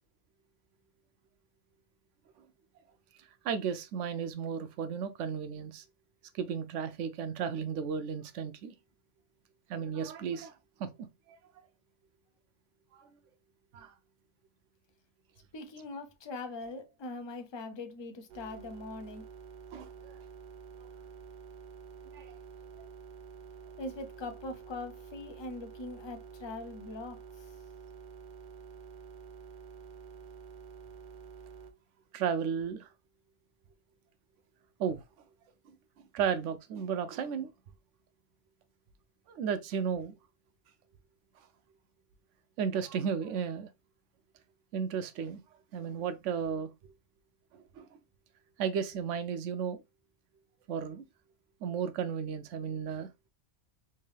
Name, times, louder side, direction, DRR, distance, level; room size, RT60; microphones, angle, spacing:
voice 1, 3.4-5.8 6.3-8.7 9.7-10.5 10.8-10.9 11.3-11.4 12.9-13.1 13.7-13.9 19.7-20.1 22.1-22.4 32.1-32.9 34.8-35.0 36.1-37.5 39.3-40.2 42.6-43.7 44.7-45.4 45.7-46.7 47.5-47.9 48.6-49.8 50.7-51.0 51.6-53.1, right 7 dB, 85° right, 0.9 m, -34 dB
voice 2, 15.5-19.2 23.8-27.2, left 2 dB, 35° left, 0.4 m, -41 dB
sound 1, 18.3-31.7, right 6 dB, 50° right, 0.7 m, -49 dB
3.4 x 2.7 x 3.2 m
omnidirectional pair, 1.2 m